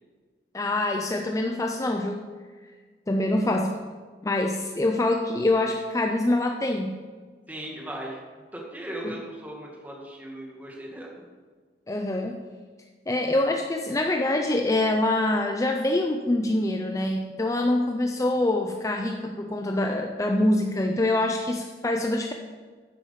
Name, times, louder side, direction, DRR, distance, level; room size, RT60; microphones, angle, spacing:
voice 1, 0.5-2.3 3.1-3.8 4.2-7.0 9.0-9.2 11.9-12.4 13.1-22.3, left 1 dB, 20° left, 3 dB, 0.4 m, -25 dB
voice 2, 7.5-8.2 8.5-11.1, right 1 dB, 10° right, -2 dB, 1.8 m, -37 dB
10.0 x 7.8 x 5.2 m, 1.5 s
head